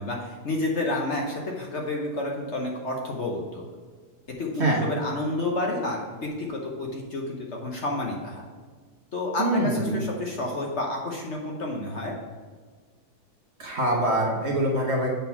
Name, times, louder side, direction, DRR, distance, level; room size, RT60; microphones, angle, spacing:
voice 1, 0.0-3.6 4.4-8.4 9.1-12.1, left 2 dB, 50° left, -1 dB, 1.0 m, -30 dB
voice 2, 9.4-10.1 13.6-15.1, right 1 dB, 45° right, -1 dB, 1.1 m, -24 dB
6.8 x 3.9 x 5.8 m, 1.5 s
omnidirectional pair, 1.8 m